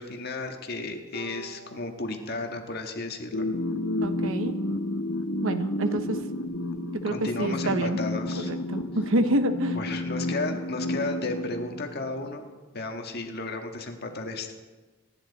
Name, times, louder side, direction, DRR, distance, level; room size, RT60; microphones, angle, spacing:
voice 1, 0.0-3.5 7.1-8.5 9.7-12.5 12.7-14.5, left 2 dB, 45° left, 4 dB, 1.6 m, -33 dB
Bowed string instrument, 1.1-4.5, right 2 dB, 40° right, 5.6 m, -49 dB
sound 1, 3.3-12.3, left 1 dB, 85° left, 1.0 m, -31 dB
voice 2, 4.0-4.6 5.4-6.2 7.0-8.0 8.4-9.8, right 1 dB, 65° right, 9 dB, 1.0 m, -27 dB
26.0 x 10.5 x 4.1 m, 1.3 s
head